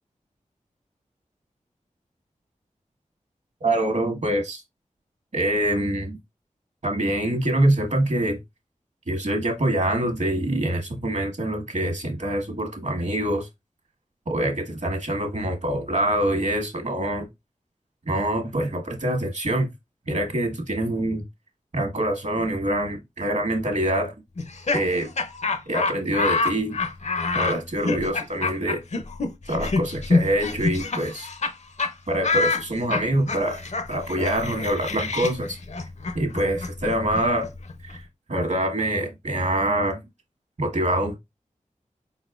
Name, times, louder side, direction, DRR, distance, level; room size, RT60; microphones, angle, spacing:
voice 1, 3.6-4.6 5.3-6.2 6.8-8.4 9.1-13.5 14.3-17.3 18.1-19.7 20.0-21.2 21.7-24.1 24.7-25.1 25.7-26.8 27.3-28.8 29.5-31.3 32.1-35.6 36.1-37.5 37.8-40.0 40.6-41.2, right 1 dB, 60° right, 1.3 m, -25 dB
Laughter, 24.4-31.5 31.8-31.9 32.2-38.0, left 3 dB, 55° left, 0.6 m, -27 dB
4.4 x 4.0 x 2.3 m
wide cardioid pair, 55°, 14 cm